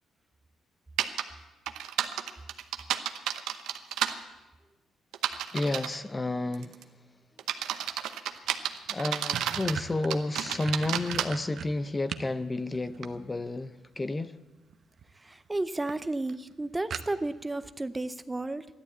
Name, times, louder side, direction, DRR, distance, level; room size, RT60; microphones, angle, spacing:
Computer Keyboard, 1.0-1.2 1.7-4.1 5.1-6.0 6.5-6.8 7.4-9.8 10.1-11.3, right 11 dB, 85° right, 0.9 m, -31 dB
voice 1, 5.5-6.9 8.9-14.4, left 2 dB, 20° left, 0.5 m, -31 dB
sound 1, 8.5-8.6 8.9-12.3 12.7-13.6 14.7-15.1 15.5-15.6 15.9-16.0 16.3-16.4 16.9-17.5, right 7 dB, 60° right, 0.8 m, -39 dB
voice 2, 15.1-18.7, right 2 dB, 15° right, 0.6 m, -33 dB
13.5 x 11.5 x 8.4 m
cardioid pair, 90°, 0 cm